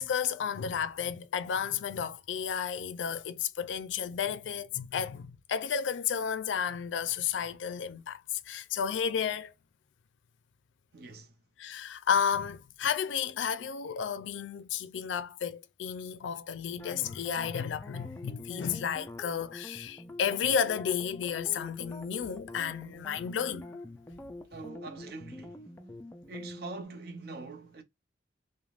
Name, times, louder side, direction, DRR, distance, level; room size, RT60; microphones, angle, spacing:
voice 1, 0.0-8.2 8.5-9.5 11.6-23.7, left 7 dB, 85° left, 0.4 m, -32 dB
voice 2, 10.9-11.4 24.5-25.7 26.3-27.8, right 3 dB, 55° right, 0.6 m, -43 dB
sound 1, 16.8-26.8, left 2 dB, 15° left, 0.3 m, -46 dB
3.2 x 2.1 x 2.4 m
head